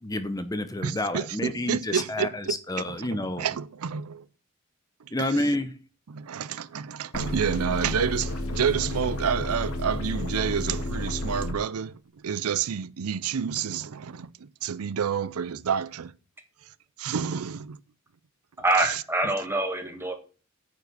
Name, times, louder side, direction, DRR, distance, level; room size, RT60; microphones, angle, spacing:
voice 1, 0.0-3.5 5.1-5.8, left 1 dB, 15° left, 0.7 m, -29 dB
voice 2, 0.8-2.8 3.4-4.2 6.1-16.1 17.0-17.8 18.8-19.0, right 7 dB, 90° right, 0.5 m, -29 dB
sound 1, 7.1-11.5, left 1 dB, 85° left, 2.0 m, -31 dB
voice 3, 18.6-20.1, right 2 dB, 10° right, 1.6 m, -25 dB
9.4 x 4.9 x 7.8 m
head